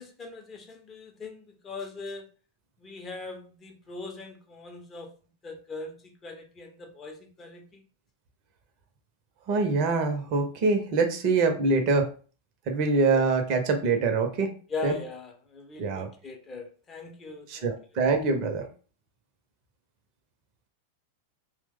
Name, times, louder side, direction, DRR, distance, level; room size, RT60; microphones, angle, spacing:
voice 1, 0.0-2.3 2.8-5.1 5.4-7.8 13.1-13.2 14.7-17.7, left 3 dB, 25° left, 4 dB, 0.6 m, -40 dB
voice 2, 9.5-12.1 12.7-14.5 14.8-14.9 15.8-16.1 17.5-18.7, right 4 dB, 40° right, 5 dB, 0.6 m, -24 dB
2.9 x 2.1 x 3.4 m, 0.39 s
figure-of-eight pair, 90°, 0 cm